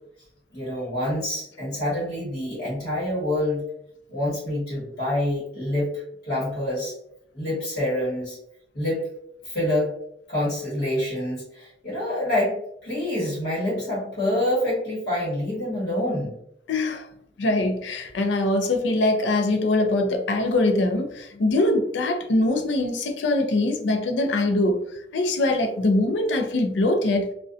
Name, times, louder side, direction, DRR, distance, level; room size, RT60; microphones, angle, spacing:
voice 1, 0.5-3.6 4.1-6.9 7.3-8.4 8.7-9.0 9.4-9.9 10.3-16.3, left 1 dB, 60° left, -9 dB, 1.1 m, -26 dB
voice 2, 16.7-17.1 17.4-27.3, left 2 dB, 90° left, 4 dB, 0.5 m, -23 dB
2.4 x 2.1 x 2.4 m, 0.74 s
head